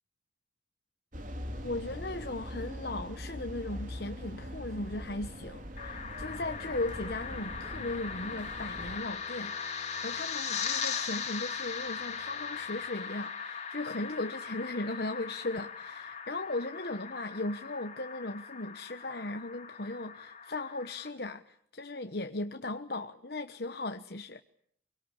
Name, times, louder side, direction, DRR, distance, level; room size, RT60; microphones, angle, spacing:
sound 1, 1.1-9.0, equal, 45° right, 3.5 m, -42 dB
voice 1, 1.6-24.4, left 2 dB, 55° left, 1.2 m, -37 dB
sound 2, 5.8-21.1, left 6 dB, 40° left, 3.3 m, -39 dB
sound 3, 7.6-13.0, left 1 dB, ahead, 5.5 m, -59 dB
25.5 x 23.5 x 9.9 m
head